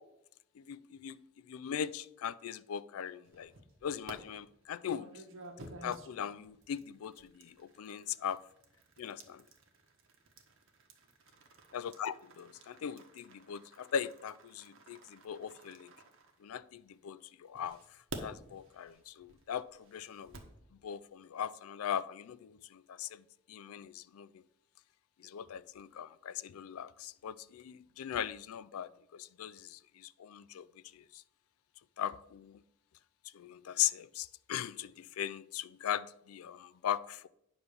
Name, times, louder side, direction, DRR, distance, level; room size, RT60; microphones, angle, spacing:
voice 1, 0.6-3.5 3.8-5.2 5.8-8.4 9.0-9.4 11.7-15.9 16.4-17.8 18.2-20.3 20.8-24.3 25.2-30.7 30.9-31.2 32.0-32.6 33.3-37.3, left 9 dB, 85° left, 0.4 m, -39 dB
sound 1, 3.2-4.1 4.9-16.9 17.5-20.6, right 2 dB, 65° right, 1.3 m, -52 dB
9.5 x 3.9 x 6.7 m
head